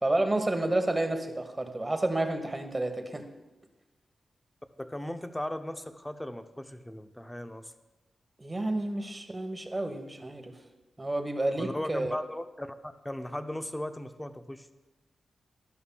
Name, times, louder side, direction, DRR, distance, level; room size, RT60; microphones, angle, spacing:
voice 1, 0.0-3.2 8.4-10.6 11.0-12.2, right 2 dB, 20° right, 6 dB, 1.1 m, -30 dB
voice 2, 4.8-7.7 11.6-14.7, left 1 dB, 10° left, 8 dB, 0.6 m, -37 dB
12.5 x 11.0 x 2.3 m, 1.1 s
wide cardioid pair, 105°, 0 cm